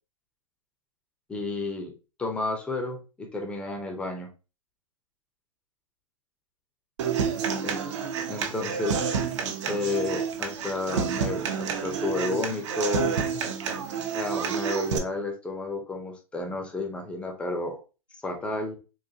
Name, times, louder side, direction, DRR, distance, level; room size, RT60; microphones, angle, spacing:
voice 1, 1.3-1.9 2.2-4.3 7.6-7.8 8.3-9.0 9.7-13.2 14.1-17.8 18.2-18.8, left 2 dB, 5° left, 3 dB, 0.6 m, -31 dB
Human voice / Acoustic guitar, 7.0-15.0, right 6 dB, 60° right, 0.7 m, -29 dB
3.9 x 2.6 x 2.7 m, 0.32 s
hypercardioid pair, 145°, 17 cm